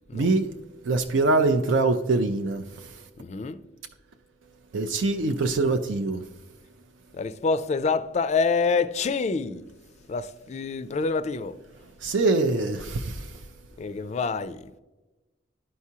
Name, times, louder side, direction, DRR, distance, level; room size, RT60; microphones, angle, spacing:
voice 1, 0.1-0.5 0.8-2.9 4.7-6.2 12.0-13.4, right 3 dB, 85° right, 0.5 m, -24 dB
voice 2, 3.2-3.6 7.1-9.6 10.1-11.5 13.8-14.8, left 4 dB, 35° left, 0.3 m, -27 dB
11.5 x 4.7 x 2.8 m
head